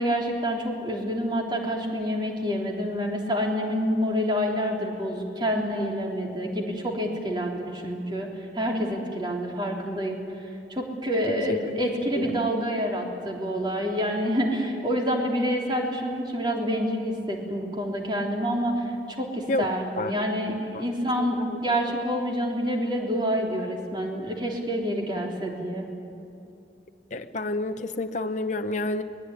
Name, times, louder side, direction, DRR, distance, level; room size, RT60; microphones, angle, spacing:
voice 1, 0.0-8.3 8.5-10.2 10.7-18.8 19.2-25.9, equal, 25° right, 0 dB, 3.5 m, -27 dB
voice 2, 12.2-12.7 19.5-19.7 20.0-20.2 20.7-20.8 21.2-21.6 27.1-29.0, left 2 dB, 45° left, 6 dB, 0.8 m, -30 dB
23.5 x 20.0 x 9.8 m, 2.7 s
head